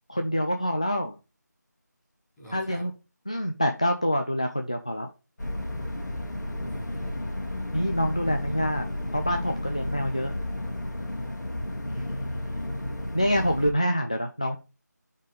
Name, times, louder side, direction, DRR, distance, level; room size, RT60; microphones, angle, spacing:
voice 1, 0.1-1.2 2.5-2.9 3.3-5.1 7.7-8.9 9.1-10.3 11.9-12.0 13.1-14.6, equal, 20° left, 5 dB, 0.3 m, -26 dB
voice 2, 2.4-2.9 6.6-7.4 11.9-12.7, right 1 dB, 5° left, -8 dB, 1.1 m, -48 dB
sound 1, 5.4-13.7, left 1 dB, 70° left, 1.8 m, -32 dB
6.2 x 4.4 x 4.8 m, 0.29 s
figure-of-eight pair, 175°, 10 cm